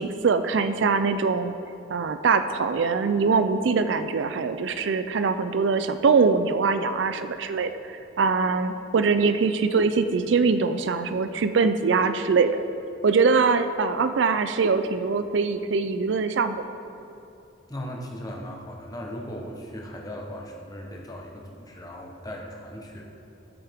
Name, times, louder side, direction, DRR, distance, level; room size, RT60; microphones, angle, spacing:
voice 1, 0.0-1.5 1.9-12.7 13.0-16.6, right 4 dB, 70° right, 10 dB, 0.4 m, -23 dB
voice 2, 17.7-23.0, equal, 20° left, 0 dB, 1.0 m, -38 dB
12.0 x 8.0 x 3.6 m, 2.7 s
head